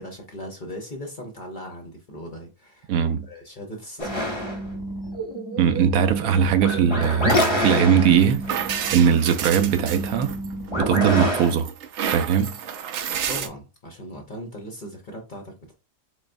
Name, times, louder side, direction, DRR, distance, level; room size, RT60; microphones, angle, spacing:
voice 1, 0.0-4.5 13.3-15.7, equal, 45° left, 0.7 m, -39 dB
voice 2, 2.9-3.2 5.6-8.4 8.9-10.4 10.8-11.7 12.1-12.6, right 8 dB, 85° right, 1.1 m, -20 dB
sound 1, 4.0-11.5, equal, 20° left, 0.9 m, -27 dB
sound 2, 8.2-10.7 11.2-13.5, right 8 dB, 65° right, 0.8 m, -30 dB
4.0 x 3.3 x 2.5 m
omnidirectional pair, 1.5 m